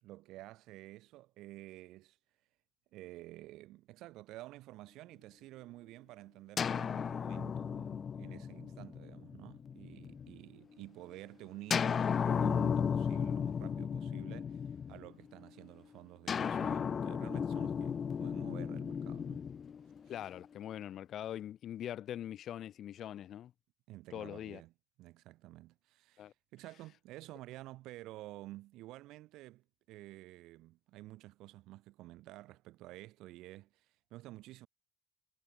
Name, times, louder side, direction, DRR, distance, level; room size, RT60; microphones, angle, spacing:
voice 1, 0.0-2.2 2.9-19.5 20.0-20.1 23.9-24.7 25.0-34.7, right 17 dB, 85° right, 1.8 m, -51 dB
sound 1, 6.6-10.4 11.7-15.3 16.3-20.4, left 7 dB, 35° left, 0.8 m, -35 dB
voice 2, 20.1-23.5 24.1-24.6 26.2-26.3, left 11 dB, 55° left, 2.2 m, -42 dB
cardioid pair, 145°, 0 cm